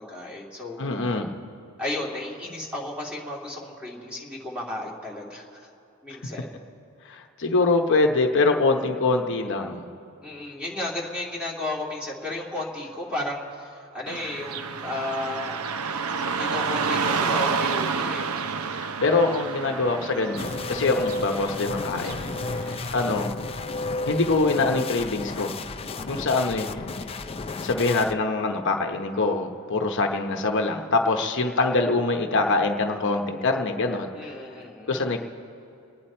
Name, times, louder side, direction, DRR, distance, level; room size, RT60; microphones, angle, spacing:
voice 1, 0.0-0.8 1.8-5.7 6.0-6.6 10.2-15.6 16.4-18.5 22.6-22.9 26.0-26.3 30.3-30.5 34.1-34.9, left 1 dB, 5° right, -3 dB, 2.4 m, -34 dB
voice 2, 0.8-1.4 7.0-9.9 18.7-22.3 22.6-23.3 24.1-25.6 26.1-26.7 27.6-34.3 34.9-35.2, left 3 dB, 55° left, 3 dB, 0.9 m, -24 dB
Car passing by / Traffic noise roadway noise, 14.1-23.1, right 5 dB, 70° right, 0.6 m, -30 dB
sound 1, 20.4-28.1, left 3 dB, 25° left, 0.5 m, -32 dB
28.5 x 9.9 x 4.4 m, 2.7 s
head